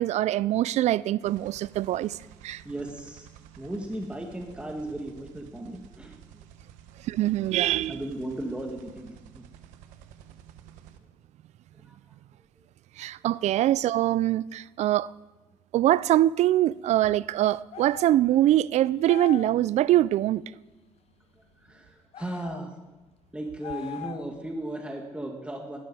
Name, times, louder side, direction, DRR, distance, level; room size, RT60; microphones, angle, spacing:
voice 1, 0.0-2.2 2.4-2.6 7.0-8.0 13.0-15.1 15.7-20.4, right 13 dB, 65° right, 0.4 m, -23 dB
sound 1, 1.2-11.0, right 10 dB, 85° right, 1.0 m, -51 dB
voice 2, 2.6-3.3 3.6-6.4 7.9-9.4 11.8-12.0 21.6-22.7 23.3-25.8, right 1 dB, 10° right, 2.0 m, -36 dB
sound 2, 17.7-18.2 19.0-19.6 22.1-22.6 23.6-24.4, left 10 dB, 55° left, 0.5 m, -39 dB
16.5 x 13.0 x 4.9 m
supercardioid pair, 70°, 12 cm